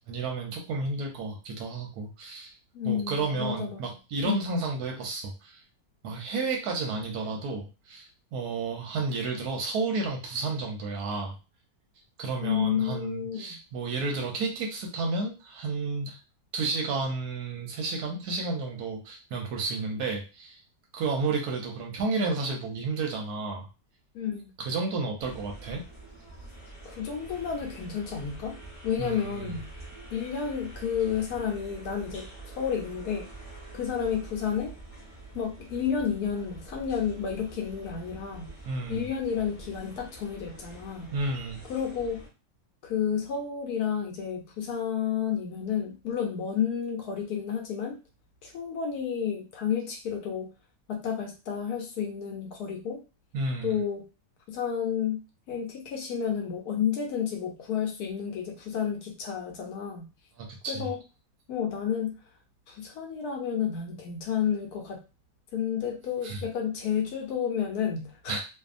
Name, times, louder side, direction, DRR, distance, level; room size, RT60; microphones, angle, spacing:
voice 1, 0.1-2.5 2.8-5.6 6.0-11.3 12.2-16.2 16.5-20.6 20.9-23.7 24.6-25.8 29.0-29.5 38.6-39.0 41.1-41.6 53.3-53.8 60.4-60.9 66.2-66.4 68.3-68.4, right 3 dB, 70° right, 1 dB, 1.0 m, -31 dB
voice 2, 2.7-3.8 4.2-4.5 12.4-13.6 24.1-24.5 26.8-28.6 28.8-29.7 30.1-33.3 33.7-34.8 35.3-38.5 38.9-41.1 41.7-42.2 42.8-48.0 48.4-50.5 50.9-53.0 53.6-54.0 54.5-55.2 55.5-60.1 60.7-61.0 61.5-62.1 62.7-65.0 65.5-68.4, left 8 dB, 70° left, 2 dB, 1.0 m, -31 dB
sound 1, 25.2-42.3, right 2 dB, 25° left, 0.8 m, -46 dB
2.7 x 2.4 x 2.4 m, 0.31 s
omnidirectional pair, 1.9 m